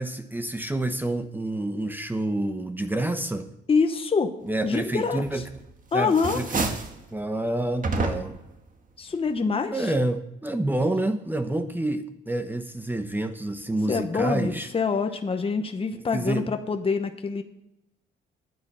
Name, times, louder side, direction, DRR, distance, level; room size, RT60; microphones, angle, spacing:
voice 1, 0.0-3.5 4.4-5.4 5.9-6.6 7.1-8.4 9.7-14.7 16.1-16.5, right 1 dB, 10° right, 8 dB, 0.9 m, -28 dB
voice 2, 3.7-4.3 4.6-5.4 5.9-6.4 9.0-9.9 13.9-17.4, left 5 dB, 30° left, 6 dB, 1.0 m, -25 dB
sound 1, 5.3-5.7 6.0-7.0 7.8-8.5, right 3 dB, 45° right, 1.6 m, -29 dB
10.0 x 9.3 x 6.8 m, 0.86 s
cardioid pair, 90°, 20 cm